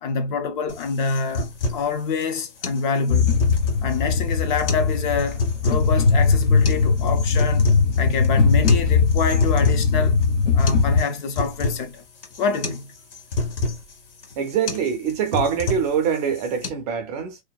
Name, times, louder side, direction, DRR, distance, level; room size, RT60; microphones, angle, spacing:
voice 1, 0.0-3.4 3.8-10.2 10.5-12.0 12.4-12.9, left 5 dB, 45° left, 0.5 m, -26 dB
sound 1, 0.7-16.7, left 3 dB, 70° left, 1.4 m, -31 dB
sound 2, 3.1-11.0, left 5 dB, 85° left, 0.7 m, -19 dB
voice 2, 14.4-17.4, right 7 dB, 35° right, 0.5 m, -24 dB
2.8 x 2.1 x 2.2 m
hypercardioid pair, 135°, 36 cm